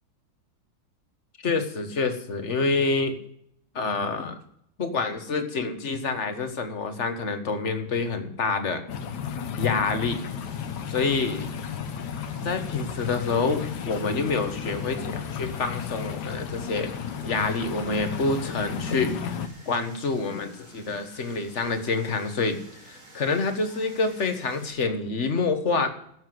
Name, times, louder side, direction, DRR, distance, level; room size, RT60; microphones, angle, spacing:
voice 1, 1.4-3.2 3.7-4.4 4.8-8.8 9.6-10.2 10.9-11.5 12.4-16.9 17.2-19.4 19.7-22.6 22.9-25.9, left 4 dB, 40° left, 8 dB, 1.5 m, -27 dB
sound 1, 8.9-19.5, left 7 dB, 65° left, 1.4 m, -33 dB
sound 2, 10.1-24.7, right 1 dB, 50° right, 6.1 m, -51 dB
12.5 x 7.9 x 7.7 m, 0.70 s
omnidirectional pair, 2.1 m